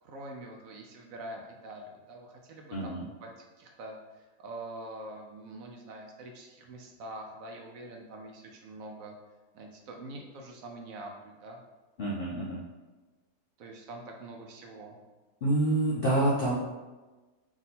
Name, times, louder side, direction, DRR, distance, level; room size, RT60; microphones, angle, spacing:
voice 1, 0.0-2.9 3.2-9.1 9.5-11.6 13.6-15.0, right 1 dB, 70° right, 1 dB, 0.9 m, -45 dB
voice 2, 2.7-3.0 12.0-12.6 15.4-16.6, right 1 dB, 60° left, -5 dB, 0.6 m, -27 dB
3.6 x 2.6 x 4.1 m, 1.2 s
omnidirectional pair, 1.6 m